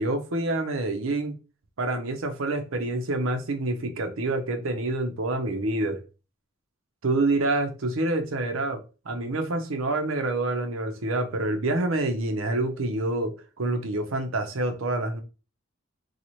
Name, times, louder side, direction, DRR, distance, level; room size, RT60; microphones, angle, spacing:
voice 1, 0.0-1.3 1.8-6.0 7.0-15.2, right 2 dB, 75° right, 0.7 m, -27 dB
3.0 x 2.4 x 4.1 m
head